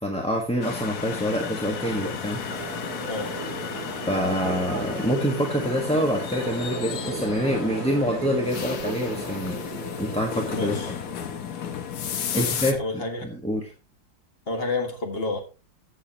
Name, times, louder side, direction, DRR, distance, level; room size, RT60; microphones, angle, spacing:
voice 1, 0.0-2.4 4.1-9.6 10.0-10.8 12.3-13.7, equal, 5° left, 1.0 m, -26 dB
sound 1, 0.6-12.7, left 8 dB, 60° left, 1.3 m, -33 dB
Crowd, 1.6-11.8, right 7 dB, 75° right, 1.9 m, -37 dB
voice 2, 10.5-11.0 12.4-13.4 14.5-15.4, left 2 dB, 30° left, 1.9 m, -30 dB
14.5 x 7.0 x 2.9 m
omnidirectional pair, 2.1 m